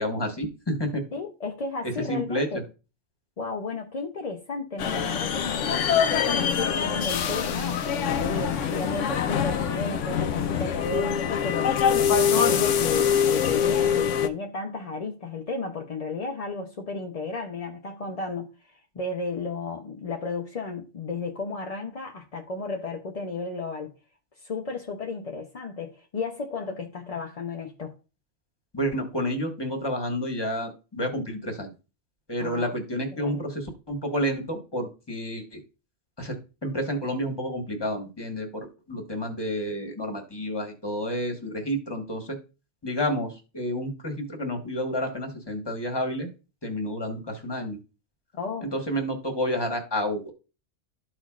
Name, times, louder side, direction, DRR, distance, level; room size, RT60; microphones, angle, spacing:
voice 1, 0.0-1.0 2.1-2.6 28.7-31.7 32.3-35.6 36.2-42.4 42.8-46.3 46.6-47.8 48.6-50.3, equal, 20° left, 1.2 m, -30 dB
voice 2, 1.1-2.6 3.4-23.9 24.4-27.9 32.4-32.7 33.1-33.4 48.3-48.7, left 3 dB, 40° left, 0.6 m, -33 dB
sound 1, 4.8-14.3, left 8 dB, 80° left, 1.0 m, -24 dB
13.0 x 4.3 x 2.4 m
omnidirectional pair, 1.3 m